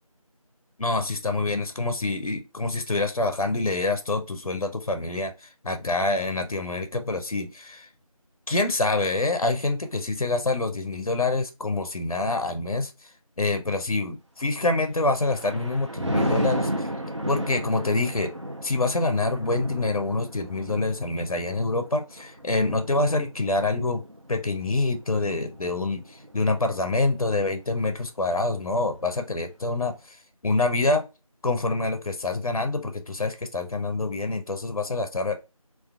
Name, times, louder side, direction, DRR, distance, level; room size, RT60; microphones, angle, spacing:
voice 1, 0.8-7.9 8.5-13.1 13.4-16.9 17.3-18.3 18.6-24.0 24.3-30.2 30.4-31.0 31.4-35.5, left 2 dB, 70° left, 6 dB, 0.5 m, -26 dB
Thunder, 14.9-26.4 26.8-27.2, equal, 50° right, 0.4 m, -33 dB
2.5 x 2.2 x 2.3 m, 0.28 s
figure-of-eight pair, 180°, 19 cm